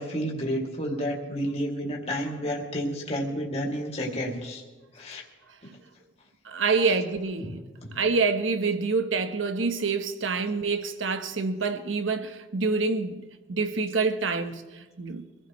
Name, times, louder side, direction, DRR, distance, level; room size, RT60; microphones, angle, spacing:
voice 1, 0.0-4.6 4.9-5.2 6.8-7.0 7.4-7.5, equal, 30° left, 2.5 m, -30 dB
voice 2, 6.4-7.6 7.9-15.3, right 4 dB, 75° right, 1.0 m, -27 dB
24.5 x 16.0 x 3.1 m
head